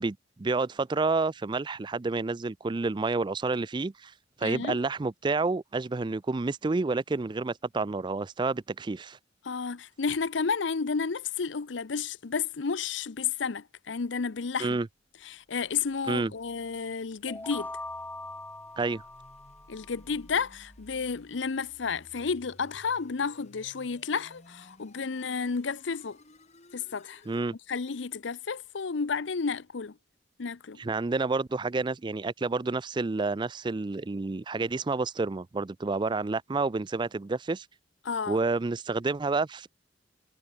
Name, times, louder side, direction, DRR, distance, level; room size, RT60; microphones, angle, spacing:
voice 1, 0.0-4.1 4.4-9.2 14.6-14.9 16.1-16.3 18.8-19.0 27.3-27.5 30.8-37.7 38.3-39.7, right 3 dB, 25° right, 0.4 m, -29 dB
voice 2, 4.4-4.8 9.4-14.8 15.3-17.7 19.7-26.2 26.7-27.2 27.7-29.9 30.4-30.8 38.0-38.4, left 5 dB, 70° left, 0.7 m, -31 dB
sound 1, 15.3-27.5, left 1 dB, 35° left, 3.7 m, -57 dB
sound 2, 17.3-20.0, left 2 dB, 10° left, 0.7 m, -41 dB
head